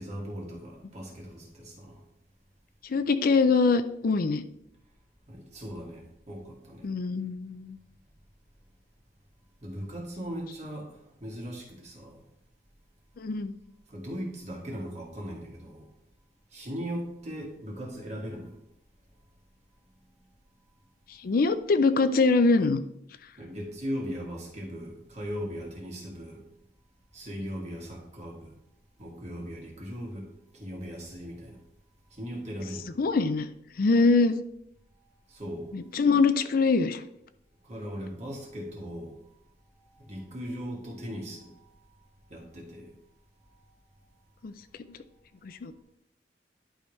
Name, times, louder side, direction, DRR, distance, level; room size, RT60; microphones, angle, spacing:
voice 1, 0.0-2.0 5.3-6.9 9.6-12.2 13.9-15.9 16.5-18.5 23.4-26.4 27.1-28.6 29.0-30.3 30.5-31.6 32.1-32.9 35.3-35.7 37.6-39.1 39.8-41.6 42.3-42.9, equal, 40° right, -2 dB, 2.1 m, -38 dB
voice 2, 2.8-4.4 6.8-7.8 13.2-13.5 21.1-22.8 33.0-33.5 33.8-34.4 35.7-37.0 44.4-44.5 45.4-45.7, left 4 dB, 55° left, 11 dB, 0.4 m, -23 dB
11.0 x 4.9 x 3.1 m, 0.78 s
head